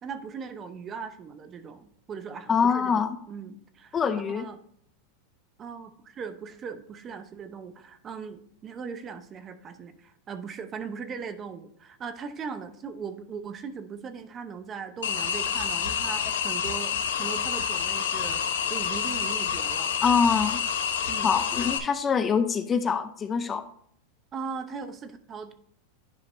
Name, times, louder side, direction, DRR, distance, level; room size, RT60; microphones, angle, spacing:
voice 1, 0.0-4.6 5.6-18.4 18.7-19.9 21.1-21.3 24.3-25.5, right 6 dB, 25° right, 10 dB, 0.7 m, -39 dB
voice 2, 2.5-3.2 3.9-4.5 20.0-20.6 21.2-23.6, left 6 dB, 20° left, 10 dB, 0.5 m, -24 dB
sound 1, 15.0-21.8, left 7 dB, 85° left, 0.8 m, -28 dB
10.0 x 5.1 x 2.6 m, 0.66 s
supercardioid pair, 130°, 0 cm